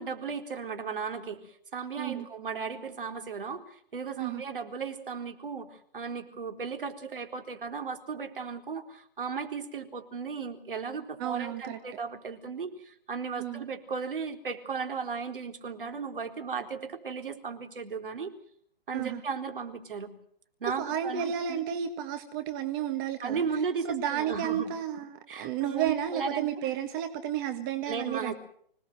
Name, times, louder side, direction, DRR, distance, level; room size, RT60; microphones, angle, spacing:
voice 1, 0.0-18.3 18.9-20.1 20.6-21.6 23.2-24.7 25.3-26.5 27.9-28.3, right 5 dB, 60° right, 5 dB, 4.0 m, -36 dB
voice 2, 11.2-11.8 13.4-13.7 18.9-19.2 20.8-23.4 23.8-28.3, right 10 dB, 20° right, 7 dB, 1.4 m, -32 dB
26.0 x 18.5 x 7.9 m, 0.64 s
figure-of-eight pair, 145°, 30 cm